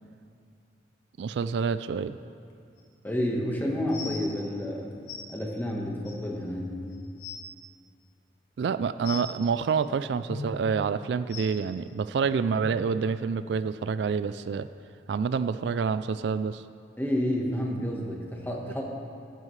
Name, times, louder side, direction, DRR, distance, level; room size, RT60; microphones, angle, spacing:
voice 1, 1.2-2.2 8.6-14.7 15.1-16.6, right 5 dB, 70° right, 13 dB, 0.3 m, -28 dB
sound 1, 2.8-2.9 3.9-4.2 5.1-5.2 6.0-6.1 6.7-6.8 7.1-7.4 9.0-9.3 10.3-10.5 11.3-11.5 12.6-12.7 13.5-13.6 14.2-14.3, left 5 dB, 65° left, 1.5 m, -38 dB
voice 2, 3.0-4.9 5.3-6.8 17.0-18.8, left 1 dB, 10° left, -1 dB, 1.4 m, -30 dB
14.5 x 12.5 x 3.3 m, 2.4 s
head